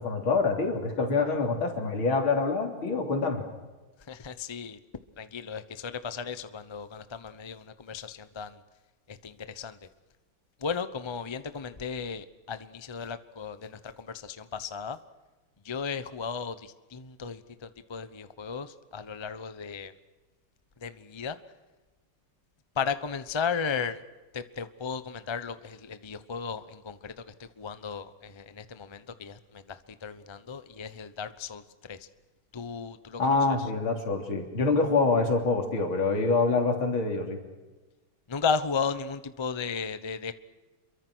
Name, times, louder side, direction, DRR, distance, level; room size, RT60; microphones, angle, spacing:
voice 1, 0.0-3.4 33.2-37.4, left 3 dB, 70° left, 3 dB, 4.2 m, -26 dB
voice 2, 4.1-4.8 5.2-8.6 9.1-9.8 10.6-15.0 15.6-19.9 20.8-21.4 22.8-24.0 24.3-32.0 32.5-33.5 38.3-40.3, left 6 dB, 35° left, 12 dB, 0.4 m, -35 dB
28.0 x 23.0 x 6.3 m, 1.2 s
omnidirectional pair, 2.3 m